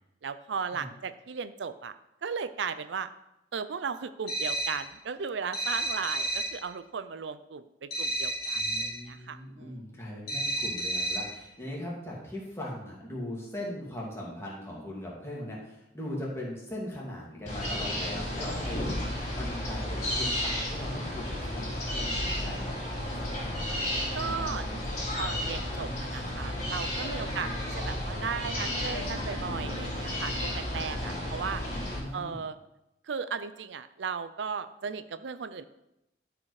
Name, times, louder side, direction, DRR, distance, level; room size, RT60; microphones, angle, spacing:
voice 1, 0.2-1.9 2.2-3.1 3.5-9.8 24.1-31.6 32.1-32.6 33.0-35.6, right 6 dB, 85° right, 13 dB, 0.5 m, -36 dB
sound 1, 4.3-4.9 5.5-6.6 7.9-9.0 10.3-11.4, right 1 dB, 60° left, 2.7 m, -31 dB
voice 2, 8.5-23.7 27.0-27.5 30.9-31.3 32.0-32.4, left 1 dB, 15° left, -4 dB, 2.4 m, -40 dB
sound 2, 17.5-32.0, left 1 dB, 45° left, 3.1 m, -33 dB
12.0 x 5.0 x 4.8 m, 0.87 s
head